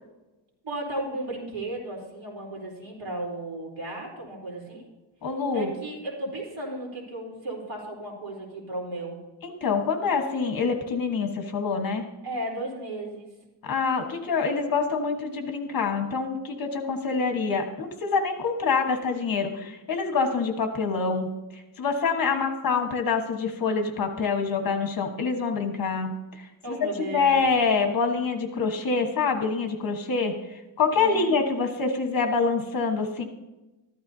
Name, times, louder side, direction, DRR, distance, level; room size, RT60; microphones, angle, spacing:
voice 1, 0.6-4.8 5.5-9.2 12.2-13.3 22.3-22.4 26.6-27.4 30.9-31.3, right 1 dB, 70° right, -2 dB, 4.1 m, -35 dB
voice 2, 5.2-5.7 9.4-12.0 13.6-33.2, left 4 dB, 50° left, 4 dB, 1.4 m, -26 dB
14.0 x 12.0 x 2.8 m, 1.0 s
wide cardioid pair, 165°, 45 cm